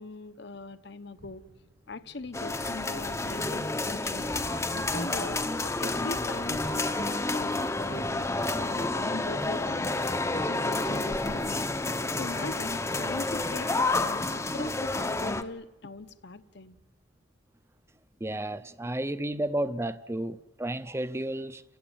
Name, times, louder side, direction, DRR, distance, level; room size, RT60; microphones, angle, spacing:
voice 1, 0.0-1.4 1.9-4.3 4.7-8.3 8.5-16.8, left 3 dB, 60° left, 13 dB, 1.0 m, -41 dB
sound 1, 1.1-17.0, equal, 60° right, 2.0 m, -53 dB
museum ambiance, 2.3-15.4, left 2 dB, 15° left, 0.8 m, -30 dB
voice 2, 18.2-21.6, right 1 dB, 15° right, 14 dB, 0.7 m, -32 dB
29.0 x 16.0 x 9.0 m, 1.1 s
head